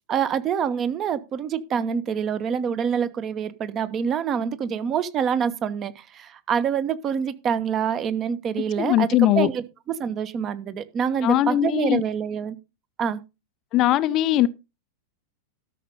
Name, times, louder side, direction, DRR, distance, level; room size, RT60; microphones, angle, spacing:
voice 1, 0.1-9.1 9.3-12.6 13.0-13.2, right 7 dB, 30° right, 1.2 m, -26 dB
voice 2, 8.8-9.5 11.2-12.0 13.7-14.5, left 14 dB, 35° left, 0.6 m, -20 dB
13.0 x 6.6 x 5.4 m
figure-of-eight pair, 90°, 0 cm